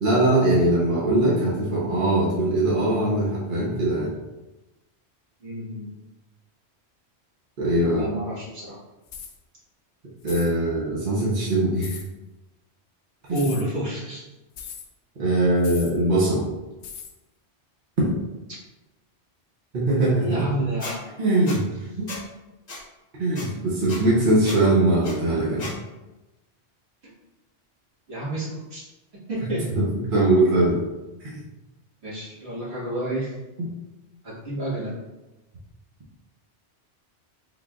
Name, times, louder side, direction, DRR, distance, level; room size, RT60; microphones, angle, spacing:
voice 1, 0.0-4.1 7.6-8.1 10.2-12.0 13.3-13.5 15.2-16.5 19.7-20.5 21.2-21.6 22.0-22.1 23.2-25.7 29.7-30.8 31.2-31.4 33.6-33.7, right 1 dB, 50° right, -6 dB, 0.9 m, -21 dB
voice 2, 5.4-5.9 7.8-8.8 13.3-14.2 20.2-21.0 28.1-28.9 29.3-29.7 32.0-33.3 34.2-34.9, right 1 dB, 70° right, -9 dB, 1.9 m, -29 dB
sound 1, 9.1-9.4 10.2-10.5 11.8-12.1 13.3-13.7 14.6-14.9 15.6-16.0 16.8-17.2, left 7 dB, 85° left, 0.9 m, -39 dB
Squeak, 20.8-20.9 21.5-21.6 22.1-22.2 22.7-22.8 23.3-23.5 23.9-24.0 24.4-24.6 25.0-25.1 25.6-25.7, left 2 dB, 40° left, 0.8 m, -35 dB
3.8 x 3.3 x 2.3 m, 1.0 s
omnidirectional pair, 1.1 m